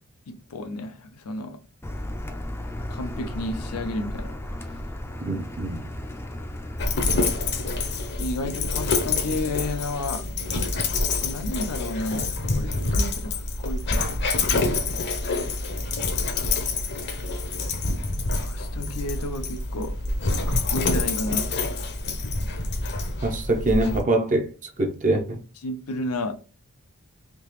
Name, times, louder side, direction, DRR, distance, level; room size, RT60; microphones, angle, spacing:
voice 1, 0.3-1.6 2.9-4.3 8.2-10.2 11.2-14.1 18.4-20.0 20.5-21.5 25.6-26.3, left 2 dB, 90° left, 0.6 m, -32 dB
Car, 1.8-8.1, left 1 dB, 10° left, 0.4 m, -35 dB
voice 2, 5.3-5.8 23.2-24.5 24.8-25.4, right 2 dB, 35° right, 0.6 m, -24 dB
Dog, 6.8-24.0, left 3 dB, 50° left, 0.7 m, -27 dB
3.5 x 2.8 x 3.0 m
head